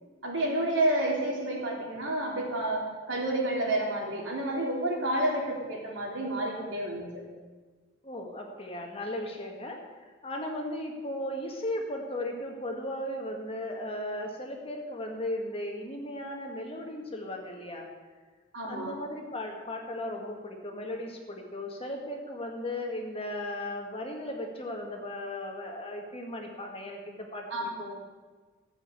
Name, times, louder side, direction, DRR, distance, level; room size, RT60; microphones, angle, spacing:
voice 1, 0.2-7.1 18.5-19.0 27.5-27.7, right 1 dB, 65° right, -2 dB, 3.6 m, -30 dB
voice 2, 8.0-17.9 18.7-28.0, left 1 dB, 30° left, 2 dB, 1.8 m, -36 dB
14.0 x 7.4 x 8.3 m, 1.4 s
head